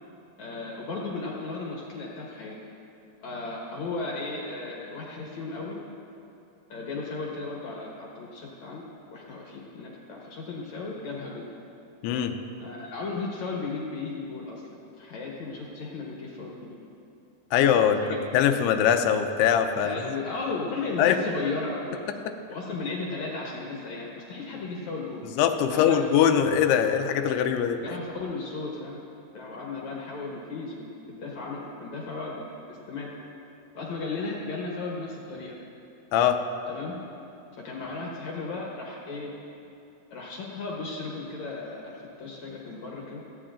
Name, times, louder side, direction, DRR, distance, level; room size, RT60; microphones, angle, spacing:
voice 1, 0.4-2.5 3.2-5.8 6.7-11.5 12.6-16.7 18.0-18.2 19.8-22.1 22.5-25.2 25.7-26.1 27.8-29.0 29.3-33.1 33.7-35.5 36.7-37.0 37.6-39.3 40.1-43.2, left 3 dB, 60° left, -3 dB, 2.1 m, -35 dB
voice 2, 12.0-12.4 17.5-18.0 18.3-20.0 21.0-21.2 25.4-27.8 36.1-36.4, left 9 dB, 90° left, 6 dB, 2.7 m, -22 dB
18.5 x 15.5 x 2.5 m, 2.7 s
omnidirectional pair, 4.7 m